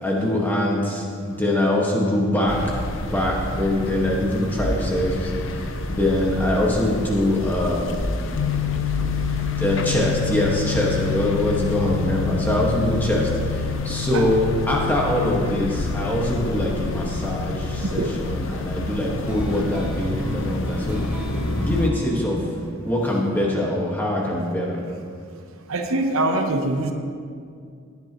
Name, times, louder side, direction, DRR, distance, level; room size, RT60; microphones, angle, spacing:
voice 1, 0.0-2.8 3.0-8.1 9.0-9.1 9.6-21.0 21.6-22.5 22.8-24.8, left 1 dB, 10° left, -3 dB, 1.6 m, -23 dB
sound 1, 2.5-21.9, left 1 dB, 60° left, 0.7 m, -29 dB
sound 2, 8.4-21.8, left 19 dB, 90° left, 0.3 m, -31 dB
voice 2, 17.8-18.2 25.7-26.9, right 2 dB, 75° right, 4 dB, 0.9 m, -23 dB
sound 3, 19.0-24.0, left 1 dB, 10° right, 1.6 m, -35 dB
17.0 x 10.5 x 3.0 m, 2.3 s
head